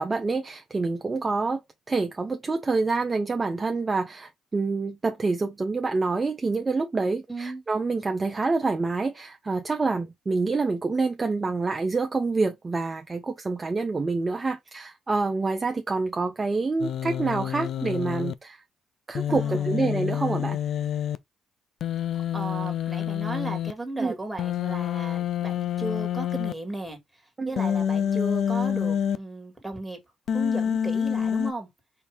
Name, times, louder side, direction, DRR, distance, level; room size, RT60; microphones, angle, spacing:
voice 1, 0.0-1.6 1.9-18.6 19.1-20.6 24.0-24.2 27.4-27.5, right 3 dB, 25° right, 0.6 m, -27 dB
voice 2, 7.3-7.6 19.3-19.8 22.3-27.0 27.5-30.0 30.3-31.7, right 2 dB, 5° right, 1.8 m, -35 dB
Human voice, 16.8-18.3 19.1-21.2 21.8-23.7 24.4-26.5 27.6-29.2 30.3-31.5, left 9 dB, 65° left, 0.4 m, -27 dB
4.4 x 2.7 x 3.4 m
cardioid pair, 90°, 0 cm